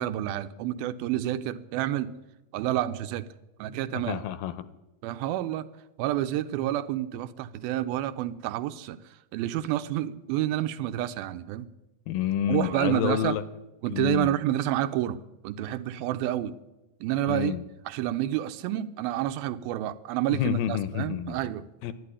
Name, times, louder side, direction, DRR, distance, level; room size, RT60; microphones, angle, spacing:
voice 1, 0.0-2.1 2.5-3.3 3.6-4.2 5.0-5.7 6.0-9.0 9.3-11.7 12.5-13.4 13.8-15.2 15.4-16.6 17.0-17.6 17.9-21.6, right 13 dB, 80° right, 2.4 m, -29 dB
voice 2, 3.9-4.6 12.1-13.4 13.9-14.4 17.3-17.6 20.3-21.4 21.8-21.9, left 10 dB, 80° left, 2.3 m, -28 dB
12.5 x 11.5 x 9.9 m
omnidirectional pair, 4.4 m